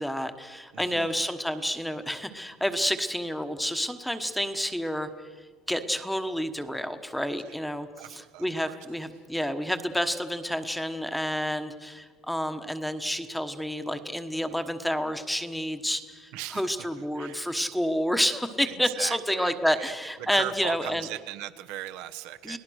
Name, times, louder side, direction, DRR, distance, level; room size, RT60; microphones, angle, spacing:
voice 1, 0.0-5.1 5.7-21.0 22.4-22.6, equal, ahead, 8 dB, 1.1 m, -29 dB
voice 2, 0.7-1.1 7.5-7.6 8.0-8.9 16.3-17.6 18.6-19.9 20.2-22.6, right 13 dB, 75° right, 9 dB, 1.1 m, -39 dB
30.0 x 18.5 x 6.4 m, 1.5 s
cardioid pair, 150°, 0 cm